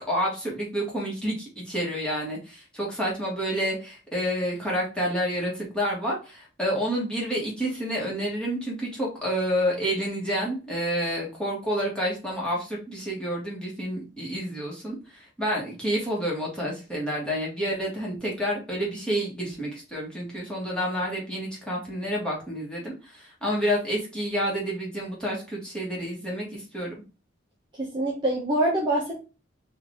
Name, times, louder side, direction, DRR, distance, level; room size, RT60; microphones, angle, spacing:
voice 1, 0.1-26.9, equal, 5° left, -5 dB, 1.7 m, -29 dB
voice 2, 27.8-29.2, right 1 dB, 25° right, -4 dB, 1.0 m, -25 dB
4.5 x 2.8 x 3.7 m, 0.32 s
head